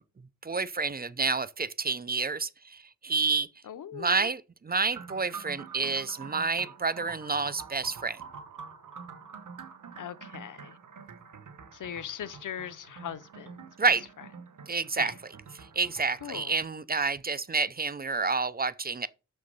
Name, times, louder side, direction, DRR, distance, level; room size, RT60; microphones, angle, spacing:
voice 1, 0.4-3.5 3.9-8.2 13.8-14.0 14.7-15.1 15.7-19.1, right 4 dB, 30° right, 0.5 m, -29 dB
voice 2, 3.6-4.3 9.9-10.8 11.7-13.9 15.0-15.1 16.2-16.6, left 9 dB, 90° left, 0.6 m, -40 dB
sound 1, 4.9-16.6, right 6 dB, 85° right, 1.1 m, -47 dB
6.7 x 6.1 x 5.4 m
wide cardioid pair, 75°, 30 cm